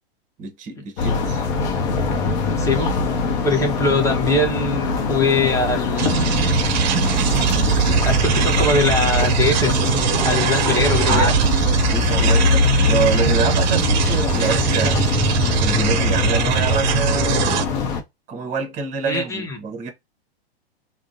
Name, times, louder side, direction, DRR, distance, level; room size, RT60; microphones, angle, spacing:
voice 1, 0.4-1.4 11.1-15.0 15.6-17.4 18.3-19.9, right 5 dB, 25° right, 0.8 m, -26 dB
sound 1, 1.0-18.0, left 3 dB, 45° left, 0.7 m, -22 dB
voice 2, 2.6-2.9 3.4-6.5 8.0-9.7 10.2-11.2 19.1-19.6, left 2 dB, 10° left, 0.7 m, -22 dB
sound 2, 6.0-17.6, right 6 dB, 45° right, 0.5 m, -21 dB
3.6 x 2.1 x 2.5 m
hypercardioid pair, 105°, 32 cm